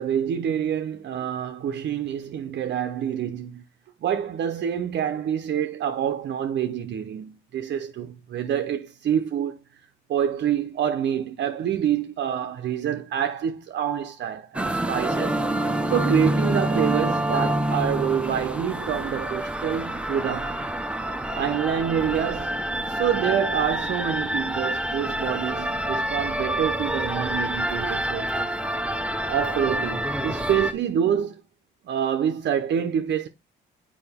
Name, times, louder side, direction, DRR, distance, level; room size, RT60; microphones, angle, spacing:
voice 1, 0.0-3.6 4.0-9.6 10.1-15.4 15.9-20.6 21.3-22.6 22.9-28.5 29.3-31.4 31.8-33.3, right 9 dB, 60° right, 0.7 m, -27 dB
sound 1, 14.5-30.7, right 1 dB, 5° right, 0.6 m, -27 dB
6.8 x 5.0 x 3.5 m
cardioid pair, 90°, 20 cm